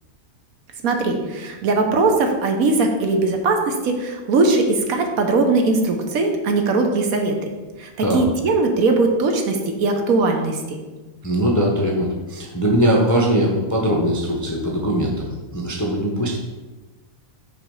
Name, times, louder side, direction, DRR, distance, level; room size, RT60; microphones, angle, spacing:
voice 1, 0.8-7.3 7.8-10.8, right 3 dB, 75° right, 4 dB, 1.3 m, -20 dB
voice 2, 11.2-16.4, equal, 20° left, -2 dB, 0.6 m, -21 dB
6.0 x 4.0 x 5.3 m, 1.2 s
omnidirectional pair, 1.5 m